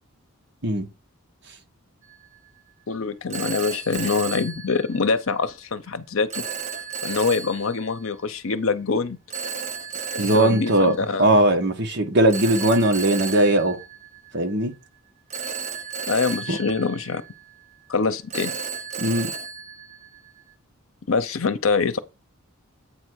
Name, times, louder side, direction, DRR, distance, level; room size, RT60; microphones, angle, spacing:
Telephone, 2.0-2.4 3.3-5.3 6.3-8.0 9.3-11.5 12.3-14.6 15.3-17.6 18.3-20.5, right 6 dB, 30° right, 0.8 m, -34 dB
voice 1, 2.9-6.4 7.0-9.2 10.1-11.3 16.1-17.2 17.9-18.6 21.1-22.0, left 4 dB, 70° left, 0.7 m, -24 dB
voice 2, 10.2-10.9 11.2-13.8 14.3-14.7 16.5-16.6 19.0-19.3, right 1 dB, 50° right, 1.3 m, -19 dB
8.5 x 3.4 x 6.3 m
head